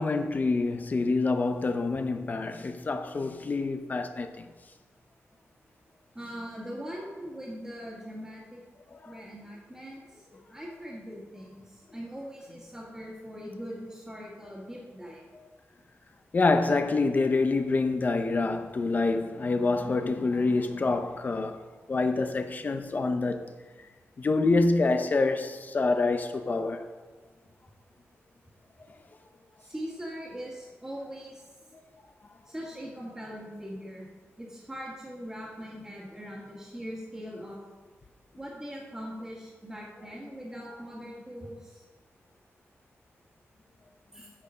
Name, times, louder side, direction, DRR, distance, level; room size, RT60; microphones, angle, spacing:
voice 1, 0.0-4.5 9.0-9.2 16.3-21.6 21.9-23.4 24.2-26.8, left 3 dB, 35° left, 0.7 m, -26 dB
voice 2, 6.1-8.6 9.1-10.0 10.5-15.2 29.6-31.5 32.5-34.1 34.4-37.6 38.4-41.8 44.1-44.3, equal, 10° right, 1.9 m, -41 dB
8.7 x 6.7 x 5.1 m
wide cardioid pair, 140°, 5 cm